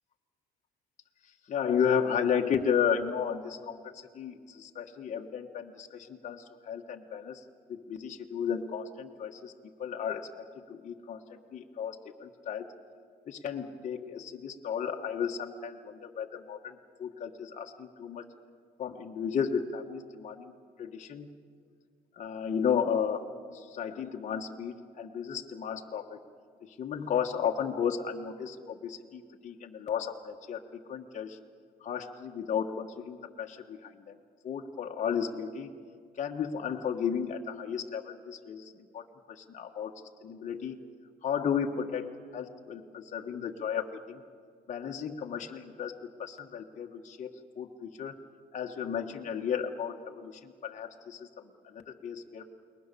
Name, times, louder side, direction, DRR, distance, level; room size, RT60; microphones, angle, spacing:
voice 1, 1.5-7.4 7.7-9.5 9.8-12.7 13.3-18.3 18.8-21.3 22.1-23.2 23.5-26.2 26.6-31.4 31.8-34.2 34.4-35.7 36.2-39.9 40.2-40.8 41.2-44.2 44.7-48.2 48.5-52.6, left 7 dB, 45° left, 2 dB, 1.6 m, -34 dB
29.5 x 20.5 x 7.0 m, 2.1 s
cardioid pair, 110°, 17 cm